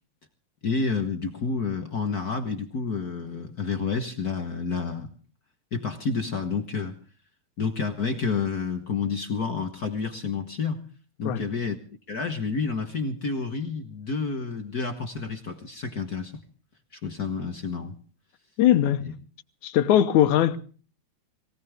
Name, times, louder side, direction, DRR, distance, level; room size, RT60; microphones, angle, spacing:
voice 1, 0.6-5.1 5.7-7.0 7.6-10.8 11.2-11.8 12.1-16.4 16.9-17.9 19.0-19.1, left 5 dB, 45° left, 1.2 m, -29 dB
voice 2, 18.6-19.1 19.6-20.6, left 11 dB, 80° left, 2.4 m, -20 dB
22.5 x 18.0 x 3.6 m
omnidirectional pair, 3.4 m